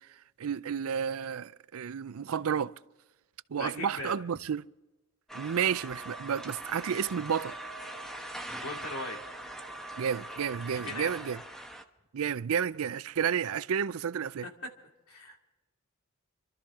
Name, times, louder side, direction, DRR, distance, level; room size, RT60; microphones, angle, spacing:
voice 1, 0.4-2.7 3.5-4.6 5.3-7.5 10.0-11.4 12.1-14.5, right 7 dB, 70° right, 0.5 m, -31 dB
voice 2, 3.5-4.1 8.6-9.2 10.7-11.2 14.4-14.7 15.1-15.4, left 2 dB, 75° left, 2.4 m, -39 dB
sound 1, 5.3-11.8, right 1 dB, ahead, 1.0 m, -42 dB
27.5 x 13.0 x 3.6 m
head